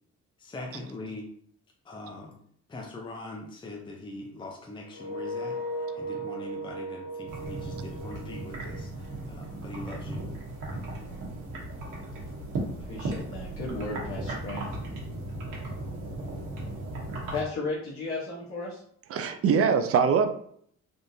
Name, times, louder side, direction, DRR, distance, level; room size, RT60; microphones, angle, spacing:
voice 1, 0.4-1.3 1.8-2.4 2.7-5.6 6.0-10.2, left 2 dB, 15° left, 0 dB, 0.6 m, -41 dB
sound 1, 4.9-9.7, right 1 dB, 65° left, 0.7 m, -37 dB
sound 2, 7.3-17.4, right 2 dB, 85° right, 1.1 m, -36 dB
voice 2, 12.9-14.7 17.3-18.8, left 3 dB, 45° left, -6 dB, 1.0 m, -34 dB
voice 3, 19.1-20.3, right 6 dB, 50° right, 8 dB, 0.5 m, -23 dB
3.6 x 2.5 x 2.7 m, 0.64 s
cardioid pair, 90°, 30 cm